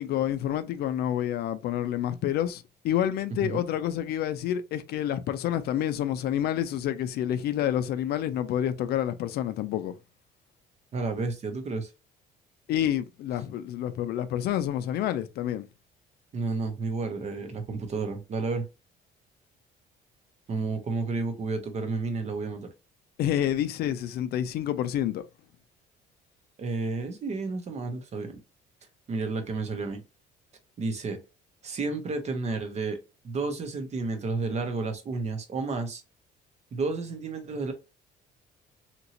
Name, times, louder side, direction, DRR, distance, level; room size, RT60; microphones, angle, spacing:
voice 1, 0.0-10.0 12.7-15.7 23.2-25.2, left 11 dB, 70° left, 0.4 m, -28 dB
voice 2, 10.9-11.9 16.3-18.7 20.5-22.7 26.6-28.4 29.1-30.0 30.8-31.2 31.6-33.0 33.2-36.0 36.7-37.7, right 3 dB, 40° right, 0.8 m, -31 dB
2.9 x 2.6 x 2.8 m
cardioid pair, 110°, 17 cm